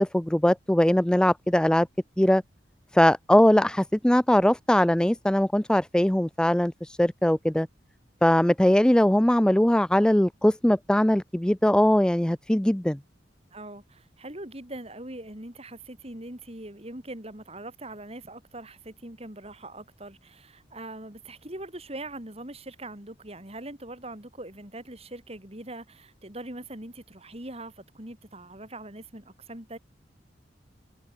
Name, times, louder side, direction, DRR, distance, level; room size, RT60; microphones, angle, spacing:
voice 1, 0.0-1.9 2.2-2.4 2.9-7.7 8.2-13.0, left 1 dB, 5° left, 0.4 m, -21 dB
voice 2, 13.5-29.8, right 1 dB, 35° right, 4.5 m, -41 dB
head